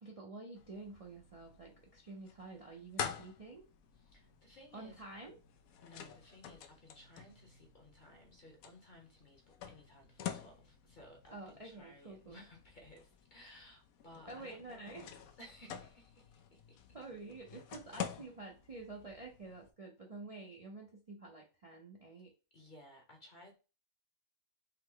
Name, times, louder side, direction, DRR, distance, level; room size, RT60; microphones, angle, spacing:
voice 1, 0.0-3.7 4.7-5.3 11.3-12.4 14.3-15.3 16.9-22.3, right 3 dB, 40° right, 0.6 m, -49 dB
sound 1, 0.6-19.7, left 9 dB, 80° left, 1.0 m, -48 dB
voice 2, 3.9-5.0 5.8-16.8 22.5-23.6, left 1 dB, 40° left, 1.0 m, -58 dB
5.7 x 2.1 x 3.7 m
omnidirectional pair, 1.5 m